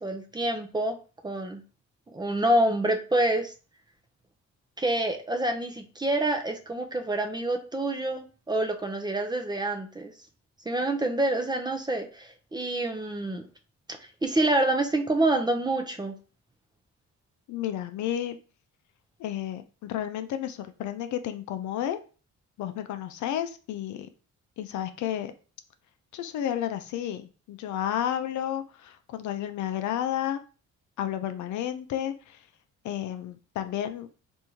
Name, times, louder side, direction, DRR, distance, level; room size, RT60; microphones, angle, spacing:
voice 1, 0.0-1.0 1.2-1.6 2.1-3.5 4.8-10.1 10.7-13.5 14.2-16.1, right 1 dB, 15° right, 5 dB, 0.5 m, -27 dB
voice 2, 17.5-18.4 19.2-22.0 22.6-24.1 24.6-25.3 26.1-30.4 31.0-32.4 32.8-34.1, left 11 dB, 75° left, 9 dB, 0.5 m, -31 dB
3.5 x 2.6 x 2.9 m, 0.36 s
cardioid pair, 90°, 30 cm